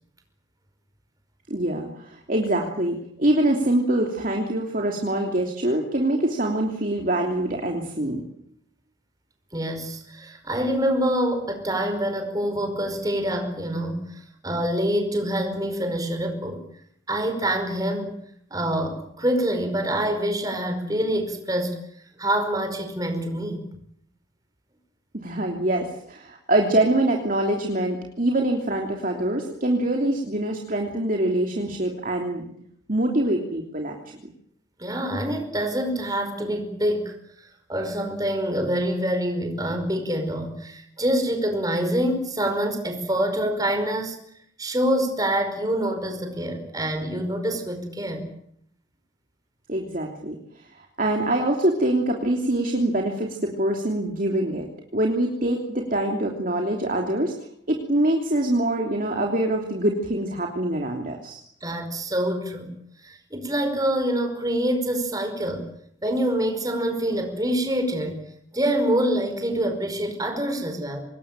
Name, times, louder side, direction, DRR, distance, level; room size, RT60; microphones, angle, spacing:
voice 1, 1.5-8.2 25.1-32.5 32.9-34.0 34.2-34.3 49.7-54.7 54.9-57.3 57.7-61.4, right 1 dB, 45° right, 1 dB, 3.1 m, -24 dB
voice 2, 9.5-16.6 17.1-18.2 18.5-21.8 22.2-23.7 34.8-37.2 37.7-44.2 44.6-48.3 61.6-62.7 63.0-65.7 66.0-68.3 68.5-71.0, right 1 dB, 20° right, 5 dB, 5.1 m, -26 dB
26.0 x 20.5 x 9.0 m, 0.70 s
head